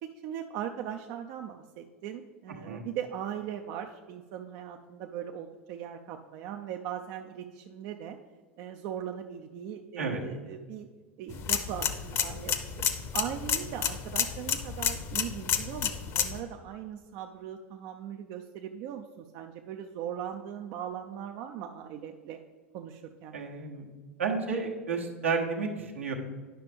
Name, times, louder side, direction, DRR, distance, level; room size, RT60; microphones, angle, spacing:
voice 1, 0.0-8.2 8.6-10.9 11.2-12.5 13.1-22.4 22.7-23.4, right 9 dB, 50° right, 4 dB, 0.5 m, -39 dB
sound 1, 11.3-16.4, left 8 dB, 40° left, 0.8 m, -31 dB
voice 2, 23.3-23.8 24.2-26.1, right 5 dB, 80° right, -1 dB, 1.3 m, -31 dB
10.0 x 5.7 x 3.5 m, 1.4 s
figure-of-eight pair, 80°, 7 cm